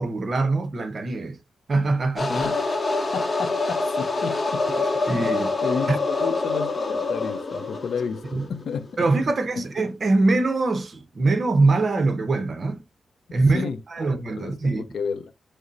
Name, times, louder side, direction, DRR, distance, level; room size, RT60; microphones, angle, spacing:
voice 1, 0.0-1.4 1.7-2.4 4.7-5.6 5.9-6.0 8.3-8.4 9.0-12.8 13.3-14.8, right 3 dB, 50° right, 0.7 m, -23 dB
sound 1, 2.2-8.8, left 3 dB, 35° left, 0.7 m, -26 dB
voice 2, 2.3-2.8 3.1-4.6 5.6-8.9 9.5-9.7 13.5-14.1 14.4-15.3, left 6 dB, 80° left, 0.5 m, -31 dB
4.9 x 2.0 x 3.9 m
cardioid pair, 90°, 0 cm